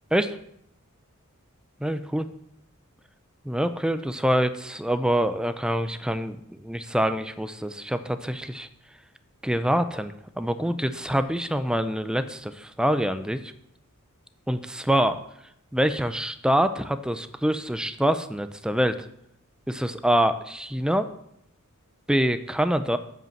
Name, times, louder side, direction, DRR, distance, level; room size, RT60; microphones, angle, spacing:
voice 1, 1.8-2.3 3.4-8.7 9.4-13.5 14.5-15.2 15.7-19.0 19.7-21.1 22.1-23.0, equal, 5° right, 10 dB, 0.4 m, -25 dB
7.9 x 5.4 x 7.1 m, 0.75 s
head